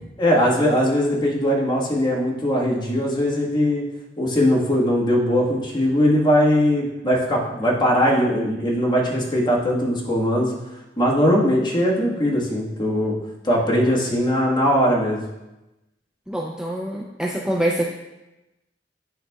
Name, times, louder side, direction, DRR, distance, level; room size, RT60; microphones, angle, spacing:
voice 1, 0.2-3.8 4.2-10.5 11.0-13.2 13.4-15.2, equal, 25° left, -4 dB, 1.5 m, -20 dB
voice 2, 16.3-18.0, right 1 dB, 5° right, -1 dB, 0.4 m, -25 dB
9.8 x 5.0 x 2.3 m, 0.99 s
head